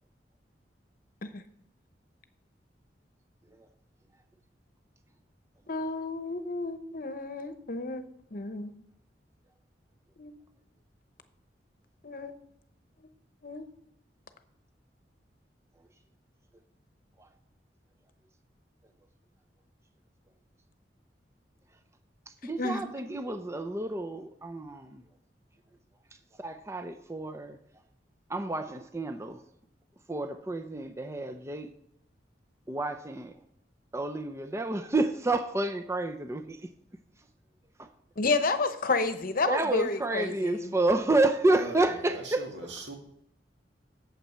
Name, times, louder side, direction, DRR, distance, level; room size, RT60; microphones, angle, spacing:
voice 1, 5.7-8.0 8.3-8.7 10.2-10.3 12.0-12.3 13.4-13.7 22.4-22.8 38.2-40.7, left 3 dB, 55° left, 0.9 m, -31 dB
voice 2, 22.4-25.0 26.4-27.6 28.3-29.4 30.1-31.7 32.7-33.3 33.9-36.6 37.8-37.9 39.5-42.5, right 2 dB, 15° right, 0.6 m, -29 dB
voice 3, 41.5-43.0, right 2 dB, 85° right, 2.2 m, -40 dB
8.8 x 7.4 x 5.5 m
head